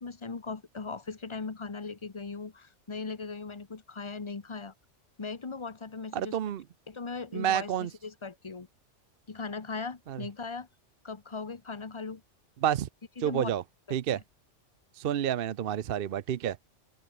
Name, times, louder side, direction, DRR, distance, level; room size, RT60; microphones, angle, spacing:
voice 1, 0.0-4.7 5.2-6.5 6.9-8.7 9.3-10.7 11.0-12.2 13.2-13.5 13.9-14.2, left 4 dB, 25° left, 1.0 m, -39 dB
voice 2, 6.1-6.6 7.3-7.9 10.1-10.2 12.6-12.9 13.2-13.6 13.9-14.2 15.0-16.6, right 10 dB, 60° right, 0.8 m, -29 dB
open air
omnidirectional pair, 1.2 m